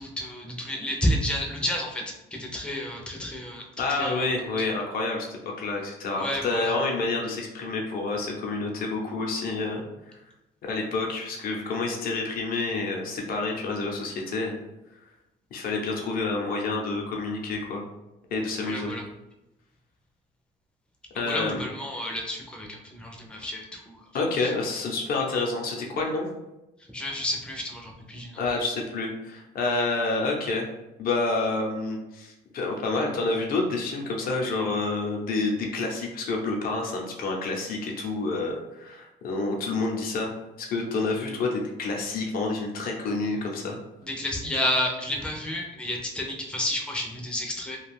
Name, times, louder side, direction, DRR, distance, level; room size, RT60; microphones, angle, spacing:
voice 1, 0.0-2.0 2.3-4.3 4.6-4.7 6.2-6.7 18.6-19.0 21.1-24.0 24.4-24.5 26.9-28.4 44.0-47.8, left 1 dB, 5° left, 0 dB, 0.5 m, -31 dB
voice 2, 3.8-9.8 10.6-14.6 15.5-17.8 18.3-18.9 21.1-21.6 24.1-26.3 28.4-30.7 31.0-40.3 40.6-43.8, left 3 dB, 60° left, 0 dB, 0.7 m, -28 dB
2.5 x 2.3 x 3.3 m, 0.96 s
cardioid pair, 110°, 17 cm